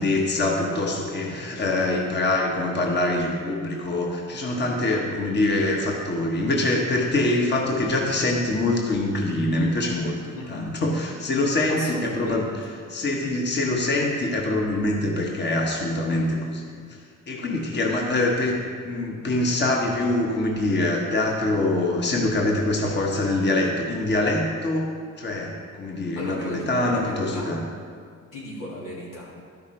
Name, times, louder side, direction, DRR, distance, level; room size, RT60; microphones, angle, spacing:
voice 1, 0.0-27.6, left 2 dB, 35° left, 0 dB, 1.2 m, -24 dB
voice 2, 4.7-5.1 10.3-10.7 11.7-12.5 26.2-27.6 28.3-29.3, left 1 dB, 90° left, -5 dB, 2.7 m, -35 dB
12.0 x 5.9 x 4.4 m, 2.1 s
cardioid pair, 100°, 31 cm